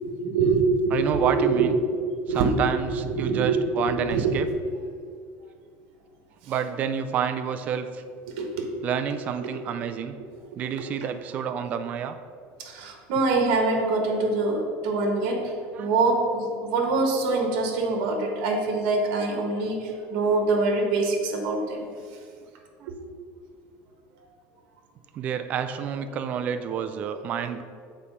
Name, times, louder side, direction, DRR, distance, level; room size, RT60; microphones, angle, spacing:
voice 1, 0.1-1.8 2.3-2.5 3.0-4.3 8.3-8.7 9.4-9.5 12.6-21.9 22.9-23.0, right 3 dB, 60° right, 3 dB, 1.3 m, -24 dB
voice 2, 0.9-1.8 2.3-4.5 6.5-8.0 8.8-10.2 10.6-12.1 15.7-15.9 22.8-22.9 25.2-27.6, right 8 dB, 30° right, 9 dB, 0.4 m, -29 dB
7.0 x 4.3 x 5.3 m, 2.2 s
cardioid pair, 180°, 5 cm